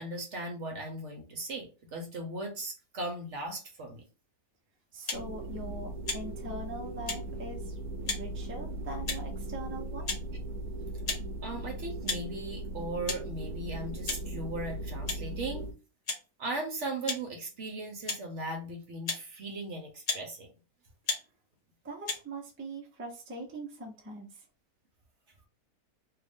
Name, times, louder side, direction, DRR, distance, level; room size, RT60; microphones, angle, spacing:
voice 1, 0.0-4.0 11.4-15.7 16.4-20.5, right 2 dB, 55° right, 2 dB, 1.0 m, -38 dB
voice 2, 4.9-7.7 8.1-10.0 21.8-24.4, right 1 dB, 10° right, -1 dB, 0.6 m, -42 dB
sound 1, 5.1-5.2 6.0-6.2 7.1-7.2 8.0-8.2 9.1-9.3 10.0-10.2 11.1-11.2 12.0-12.2 13.1-13.2 14.1-14.2 15.1-15.2 16.0-16.2 17.1-17.2 18.0-18.2 19.0-19.2 20.0-20.2 21.0-21.2 22.1-22.2, left 4 dB, 40° left, 0.5 m, -33 dB
sound 2, 5.1-15.7, right 1 dB, 75° right, 1.0 m, -38 dB
3.1 x 2.5 x 3.5 m, 0.33 s
omnidirectional pair, 1.6 m